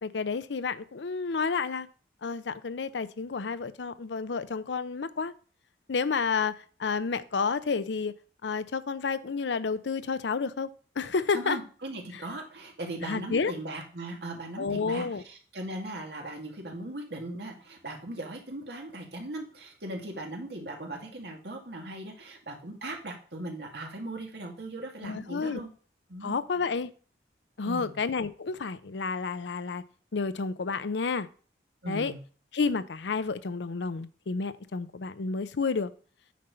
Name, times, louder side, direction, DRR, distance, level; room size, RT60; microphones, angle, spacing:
voice 1, 0.0-1.9 2.2-5.3 5.9-8.1 8.4-10.7 11.0-11.6 13.0-13.5 14.6-15.2 25.0-25.6 26.2-26.9 27.6-29.8 30.1-31.3 31.9-32.1 32.5-35.9, left 4 dB, 85° left, 14 dB, 0.6 m, -30 dB
voice 2, 11.3-25.7 26.1-26.4 27.6-27.9 31.8-32.2, right 1 dB, 75° right, 1 dB, 2.1 m, -38 dB
9.3 x 4.4 x 5.3 m, 0.41 s
head